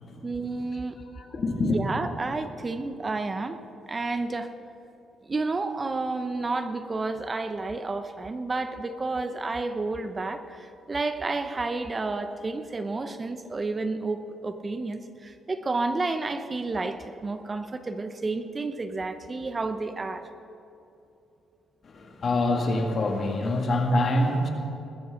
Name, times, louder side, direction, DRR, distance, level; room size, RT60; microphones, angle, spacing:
voice 1, 0.2-1.0 1.6-3.6 3.9-4.5 5.3-20.3, right 3 dB, 30° right, 9 dB, 0.7 m, -31 dB
voice 2, 1.1-1.8 21.9-24.5, left 2 dB, 45° left, 2 dB, 2.2 m, -25 dB
20.0 x 14.0 x 3.9 m, 2.8 s
cardioid pair, 90°, 0 cm